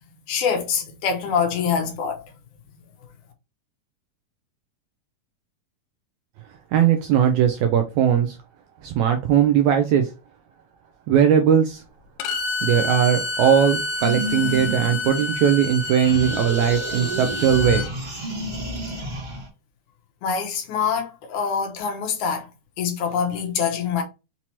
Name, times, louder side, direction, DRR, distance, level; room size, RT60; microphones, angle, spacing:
voice 1, 0.3-2.2 20.2-22.5 22.8-24.0, left 6 dB, 75° left, 2.1 m, -25 dB
voice 2, 6.7-8.3 8.8-10.1 11.1-11.8 12.6-17.9, right 8 dB, 80° right, 1.7 m, -19 dB
Bowed string instrument, 12.2-17.9, left 2 dB, 90° left, 2.3 m, -29 dB
Disturbing Monster Sounds, 14.0-15.6 16.0-19.5, equal, 45° right, 0.7 m, -30 dB
6.0 x 2.7 x 2.9 m
omnidirectional pair, 3.8 m